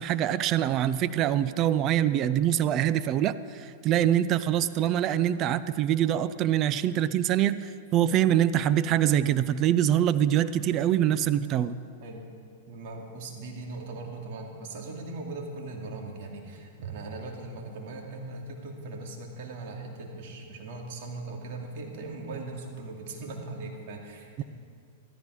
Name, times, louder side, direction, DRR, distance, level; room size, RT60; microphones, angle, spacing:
voice 1, 0.0-11.8 24.4-24.5, right 11 dB, 40° right, 14 dB, 0.5 m, -24 dB
voice 2, 12.7-24.4, right 3 dB, 60° right, 1 dB, 2.5 m, -39 dB
14.0 x 13.5 x 4.8 m, 2.3 s
hypercardioid pair, 120°, 0 cm